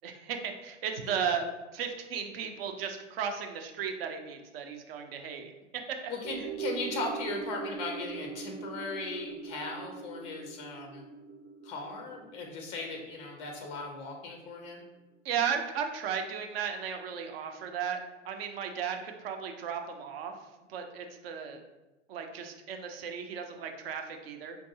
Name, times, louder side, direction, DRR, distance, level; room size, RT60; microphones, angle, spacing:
voice 1, 0.0-1.5 1.7-6.1 15.2-18.0 18.2-20.3 20.7-21.6 22.1-24.6, right 7 dB, 50° right, 5 dB, 0.6 m, -35 dB
voice 2, 6.1-11.0 11.6-14.8, left 3 dB, 15° left, 2 dB, 0.4 m, -38 dB
sound 1, 6.2-14.7 15.0-15.1, right 6 dB, 85° right, 0.9 m, -41 dB
4.6 x 2.6 x 2.6 m, 1.1 s
figure-of-eight pair, 100°, 38 cm